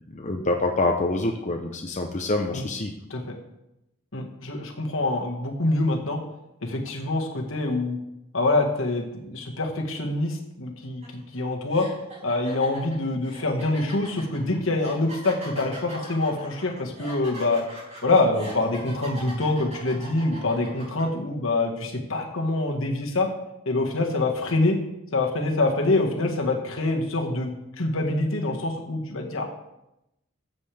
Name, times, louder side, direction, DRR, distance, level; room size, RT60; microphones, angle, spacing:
voice 1, 0.1-2.9, left 2 dB, 35° left, 2 dB, 0.8 m, -26 dB
voice 2, 4.1-6.2 6.6-8.0 8.3-11.9 12.2-17.6 18.0-23.3 23.7-24.8 25.1-27.5 27.8-29.5, left 2 dB, 75° left, 1 dB, 1.7 m, -25 dB
sound 1, 11.0-11.2 11.7-21.0, right 1 dB, 35° right, 4.6 m, -41 dB
14.0 x 7.6 x 3.5 m, 0.88 s
head